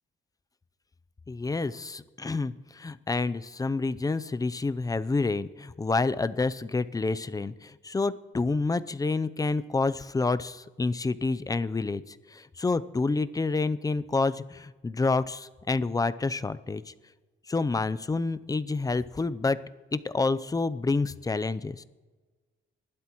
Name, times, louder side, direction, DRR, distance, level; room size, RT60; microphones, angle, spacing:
voice 1, 1.3-16.9 17.5-19.6 19.9-21.8, left 3 dB, 20° left, 14 dB, 0.6 m, -28 dB
26.0 x 12.0 x 3.1 m, 1.3 s
cardioid pair, 90°, 20 cm